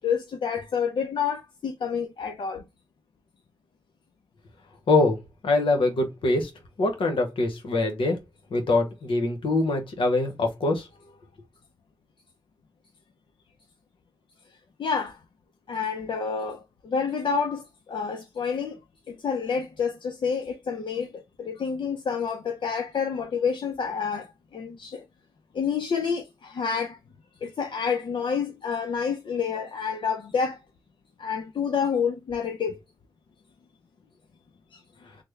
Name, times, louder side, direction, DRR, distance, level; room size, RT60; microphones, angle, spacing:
voice 1, 0.0-2.6 14.8-15.2 15.7-18.8 19.1-24.3 24.5-25.0 25.5-27.0 27.4-30.6 31.2-32.8, left 6 dB, 65° left, 0.6 m, -28 dB
voice 2, 4.9-6.5 6.8-8.2 8.5-10.9, left 2 dB, 85° left, 1.0 m, -24 dB
3.4 x 2.1 x 3.2 m
cardioid pair, 55°, 9 cm